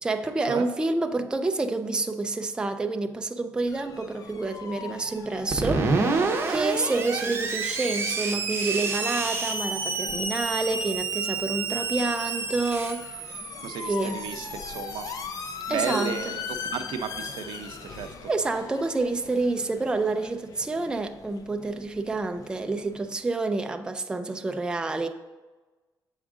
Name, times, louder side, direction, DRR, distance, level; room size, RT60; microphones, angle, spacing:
voice 1, 0.0-13.2 13.9-14.2 15.7-16.1 18.3-25.1, right 3 dB, 10° right, 0.3 m, -28 dB
sound 1, 3.7-23.2, left 6 dB, 50° left, 0.5 m, -41 dB
Screech, 5.5-16.0, right 4 dB, 30° right, 0.8 m, -29 dB
voice 2, 13.6-15.1 15.7-18.1, right 7 dB, 85° right, 0.5 m, -33 dB
7.1 x 4.8 x 3.7 m
cardioid pair, 155°, 8 cm